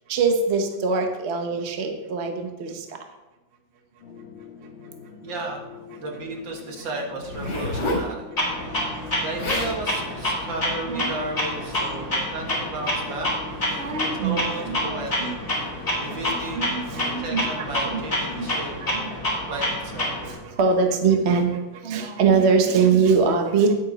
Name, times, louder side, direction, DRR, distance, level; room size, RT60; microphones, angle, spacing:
voice 1, 0.1-2.8 10.9-11.1 13.7-14.4 14.7-15.3 16.3-18.0 18.3-19.1 19.5-19.6 20.2-21.5 21.8-23.7, right 5 dB, 45° right, 4 dB, 1.0 m, -23 dB
sound 1, 4.0-18.8, left 6 dB, 80° left, 2.0 m, -43 dB
voice 2, 5.2-5.6 6.0-8.8 9.2-13.3 13.7-15.3 16.0-19.0 19.5-20.1, right 2 dB, 70° right, 0 dB, 2.4 m, -34 dB
Zipper (clothing), 7.2-8.1 9.1-9.2 9.4-9.8 10.5-10.7, left 1 dB, 60° left, 3.3 m, -28 dB
Clock, 8.4-20.4, left 1 dB, 30° left, 3.7 m, -28 dB
9.8 x 9.0 x 4.0 m, 1.1 s
omnidirectional pair, 2.2 m